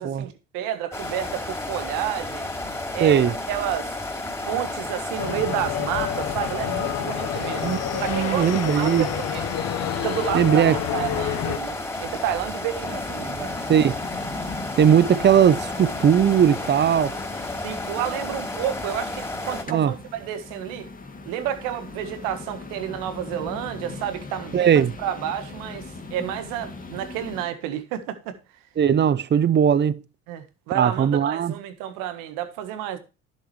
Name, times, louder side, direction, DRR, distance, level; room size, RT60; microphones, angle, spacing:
voice 1, 0.0-2.5 2.9-4.0 4.4-7.7 8.0-8.4 8.7-9.4 10.0-13.6 17.6-20.9 21.2-28.3 30.3-33.0, right 11 dB, 75° right, 1.5 m, -30 dB
sound 1, 0.9-19.6, left 2 dB, 10° left, 4.4 m, -32 dB
voice 2, 3.0-3.3 7.6-9.1 10.3-10.8 13.7-13.9 14.8-17.2 19.7-19.9 24.5-24.9 28.8-30.0 30.7-31.5, right 8 dB, 35° right, 0.7 m, -19 dB
sound 2, 5.2-11.6, left 11 dB, 50° left, 0.8 m, -29 dB
sound 3, 12.8-27.5, left 3 dB, 25° left, 2.1 m, -39 dB
11.0 x 7.5 x 3.2 m
hypercardioid pair, 65°, 32 cm